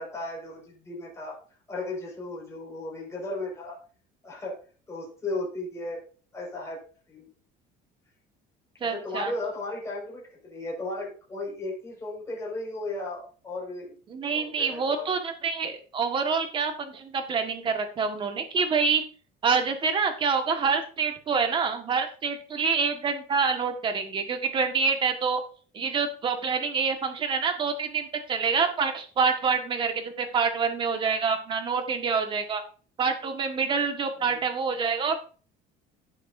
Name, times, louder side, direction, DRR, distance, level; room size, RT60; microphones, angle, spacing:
voice 1, 0.0-1.4 1.7-3.8 4.2-4.6 4.9-6.0 6.3-6.8 7.1-7.3 8.8-14.0 14.3-15.1 34.2-34.4, left 2 dB, 15° left, -3 dB, 5.3 m, -35 dB
voice 2, 8.8-9.3 14.1-19.0 19.4-25.4 25.7-32.6 33.0-35.2, right 5 dB, 30° right, 5 dB, 1.6 m, -26 dB
16.5 x 6.6 x 2.7 m, 0.39 s
cardioid pair, 160°, 17 cm